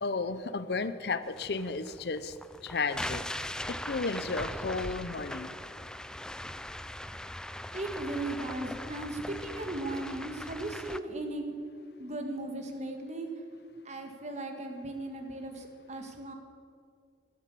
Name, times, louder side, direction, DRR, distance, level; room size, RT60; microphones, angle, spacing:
voice 1, 0.0-2.3 2.6-3.2 3.7-5.5, left 4 dB, 65° left, 13 dB, 0.6 m, -33 dB
sound 1, 1.3-11.0, left 1 dB, 5° left, 0.3 m, -40 dB
voice 2, 7.7-11.6 12.0-13.3 13.8-16.3, right 2 dB, 40° right, 4 dB, 1.7 m, -37 dB
12.5 x 11.0 x 8.3 m, 2.2 s
head